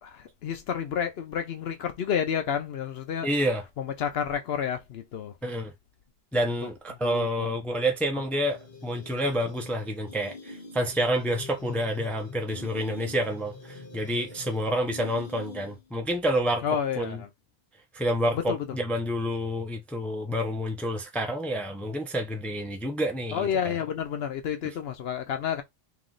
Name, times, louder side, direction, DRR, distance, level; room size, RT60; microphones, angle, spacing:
voice 1, 0.0-3.3 3.8-5.3 7.0-7.5 16.6-17.3 18.3-18.7 23.3-25.6, left 8 dB, 80° left, 0.9 m, -30 dB
voice 2, 3.2-3.6 5.4-5.7 6.3-16.6 17.0-17.2 17.9-23.7, equal, ahead, 0.6 m, -28 dB
sound 1, 8.4-15.9, left 4 dB, 60° left, 1.6 m, -45 dB
3.0 x 2.9 x 3.9 m
omnidirectional pair, 1.0 m